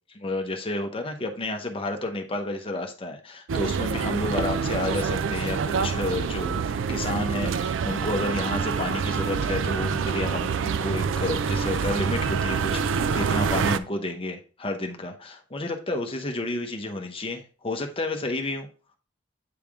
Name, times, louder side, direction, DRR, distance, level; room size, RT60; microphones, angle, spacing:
voice 1, 0.1-18.7, left 2 dB, 30° left, 4 dB, 0.9 m, -31 dB
sound 1, 3.5-13.8, right 6 dB, 85° right, 0.4 m, -26 dB
8.6 x 3.4 x 3.5 m, 0.37 s
head